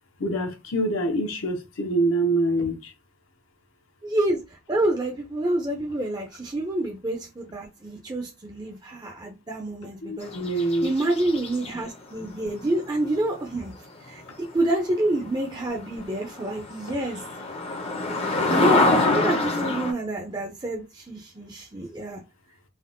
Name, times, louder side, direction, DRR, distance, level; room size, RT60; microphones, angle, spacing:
voice 1, 0.2-2.9 10.0-10.9, right 1 dB, 75° left, 0.7 m, -25 dB
voice 2, 4.0-10.3 10.8-13.7 14.0-17.2 18.5-22.2, right 1 dB, 20° right, 0.5 m, -28 dB
sound 1, 10.2-11.7 15.3-15.4 15.9-16.0 16.1-19.9, left 2 dB, 30° left, 0.5 m, -24 dB
3.4 x 2.2 x 2.5 m
head